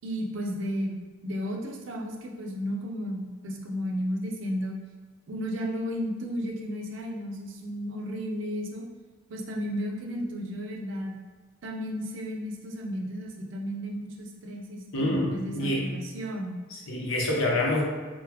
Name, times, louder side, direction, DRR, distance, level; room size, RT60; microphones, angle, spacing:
voice 1, 0.0-4.7 5.3-8.9 9.3-11.2 11.6-16.6, equal, 65° right, 0 dB, 0.5 m, -33 dB
voice 2, 14.9-15.9 16.7-17.8, left 1 dB, 75° left, -2 dB, 0.7 m, -27 dB
3.9 x 2.0 x 2.8 m, 1.4 s
head